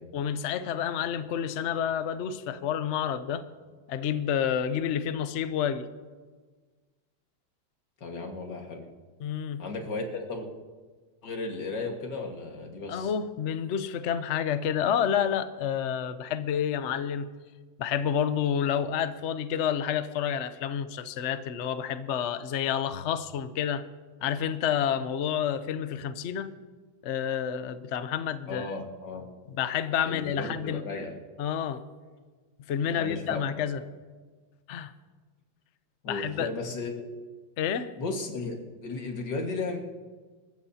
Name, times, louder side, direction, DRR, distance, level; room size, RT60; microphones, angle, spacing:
voice 1, 0.1-3.4 3.9-5.9 9.2-9.6 12.9-17.3 17.8-23.8 24.2-26.5 27.0-28.7 29.6-30.8 31.4-31.8 32.7-33.8 34.7-34.9 36.1-36.5 37.6-37.9, left 8 dB, 75° left, 11 dB, 0.6 m, -29 dB
voice 2, 8.0-8.8 9.6-10.5 11.2-13.1 28.5-29.3 30.1-31.2 32.9-33.5 36.0-37.1 38.0-39.8, left 3 dB, 60° left, 2 dB, 2.3 m, -35 dB
27.0 x 14.5 x 2.8 m, 1.4 s
omnidirectional pair, 2.2 m